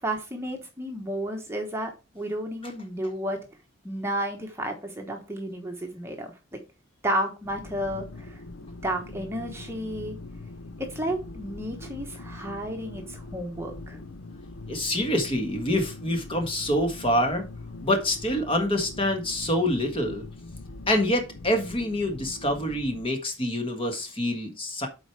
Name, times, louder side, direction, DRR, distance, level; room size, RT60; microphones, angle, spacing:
voice 1, 0.0-1.9 2.1-3.4 3.8-6.6 7.0-8.4 8.8-10.2 10.9-14.0, right 1 dB, 15° right, 3 dB, 1.1 m, -32 dB
sound 1, 7.4-23.1, left 2 dB, 70° left, 0.7 m, -42 dB
voice 2, 14.7-17.4 17.8-20.2 20.9-24.9, left 1 dB, 25° left, 4 dB, 1.6 m, -26 dB
7.9 x 4.7 x 4.7 m, 0.28 s
head